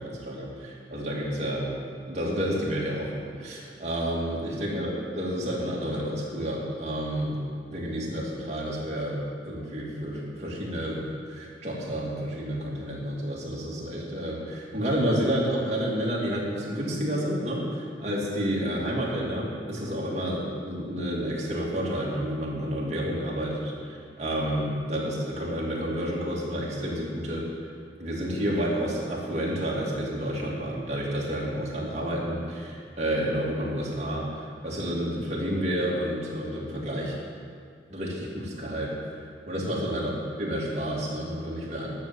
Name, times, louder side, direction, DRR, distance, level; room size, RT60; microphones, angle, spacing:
voice 1, 0.0-1.7 2.1-4.9 5.1-7.4 7.7-27.5 28.0-37.1 37.9-38.9 39.5-41.9, equal, 40° right, -5 dB, 2.5 m, -30 dB
11.0 x 6.9 x 7.8 m, 2.3 s
head